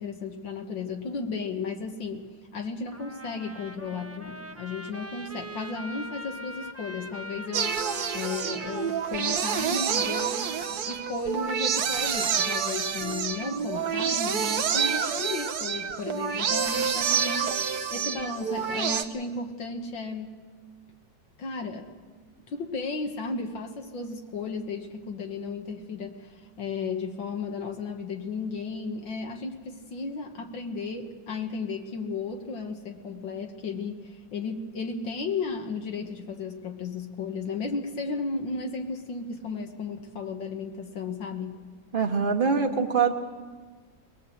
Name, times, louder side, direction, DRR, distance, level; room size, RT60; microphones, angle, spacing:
voice 1, 0.0-2.3 2.5-7.8 8.1-20.4 21.4-21.9 22.5-41.6, left 4 dB, 75° left, 3 dB, 2.2 m, -34 dB
Trumpet, 2.9-11.1, right 1 dB, 10° right, 0.9 m, -42 dB
sound 1, 7.5-19.0, right 7 dB, 60° right, 1.4 m, -28 dB
voice 2, 41.9-43.1, right 5 dB, 30° right, 4 dB, 1.5 m, -23 dB
21.5 x 20.0 x 7.9 m, 1.5 s
omnidirectional pair, 2.1 m